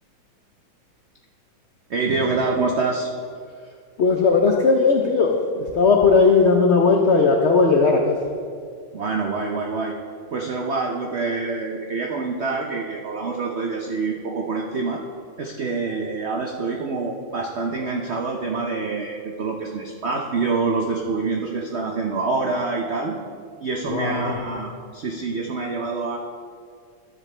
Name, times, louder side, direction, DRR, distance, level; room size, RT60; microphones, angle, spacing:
voice 1, 1.9-3.1 8.9-10.0 10.3-15.0 15.4-23.2 23.6-26.2, right 4 dB, 85° right, 1 dB, 0.5 m, -26 dB
voice 2, 4.0-8.2 23.8-24.4, left 4 dB, 80° left, 2 dB, 0.6 m, -17 dB
12.0 x 7.5 x 3.3 m, 2.2 s
omnidirectional pair, 2.0 m